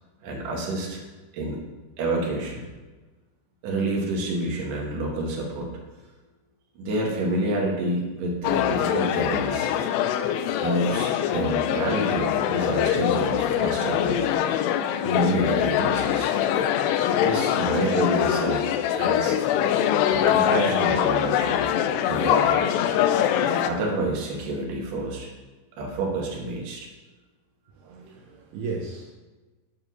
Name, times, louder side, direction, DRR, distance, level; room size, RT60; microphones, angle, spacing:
voice 1, 0.2-1.0 1.3-1.6 2.0-2.6 3.6-5.7 6.8-9.7 10.6-14.2 15.0-16.3 17.1-18.7 19.0-19.4 20.1-21.7 22.0-22.6 23.6-25.3 25.8-26.9, right 1 dB, 55° right, -1 dB, 2.7 m, -28 dB
sound 1, 8.4-23.7, left 10 dB, 90° left, 2.4 m, -23 dB
voice 2, 27.7-29.1, right 4 dB, 75° right, -1 dB, 2.3 m, -35 dB
9.5 x 5.2 x 6.1 m, 1.2 s
omnidirectional pair, 5.3 m